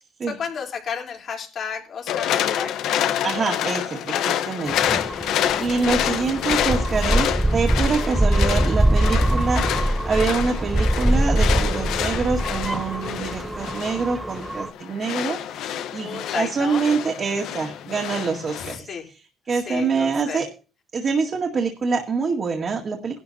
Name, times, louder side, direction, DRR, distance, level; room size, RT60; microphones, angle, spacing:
voice 1, 0.3-2.7 4.6-5.5 13.0-13.6 16.0-16.8 18.6-19.0 19.5-20.4, left 7 dB, 60° left, 2 dB, 3.7 m, -33 dB
sound 1, 2.1-18.8, left 10 dB, 85° left, 1.0 m, -27 dB
voice 2, 3.2-4.8 5.1-5.3 5.6-18.9 19.5-20.5 20.9-23.2, right 4 dB, 50° right, 1 dB, 2.0 m, -25 dB
sound 2, 4.7-14.7, right 1 dB, 10° right, 0.9 m, -23 dB
18.5 x 11.5 x 2.8 m, 0.35 s
cardioid pair, 90°, 0 cm